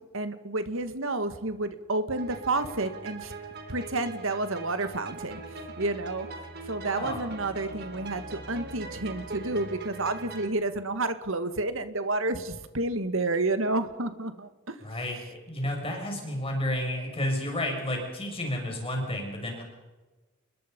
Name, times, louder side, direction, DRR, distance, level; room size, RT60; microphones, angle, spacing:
voice 1, 0.1-3.3 3.7-6.3 6.6-14.9, right 2 dB, 70° right, 9 dB, 2.1 m, -30 dB
sound 1, 2.2-10.5, right 3 dB, 55° right, 3.5 m, -41 dB
voice 2, 6.8-7.2 14.8-19.6, left 1 dB, 30° left, 1 dB, 6.8 m, -31 dB
29.5 x 22.0 x 5.5 m, 1.2 s
head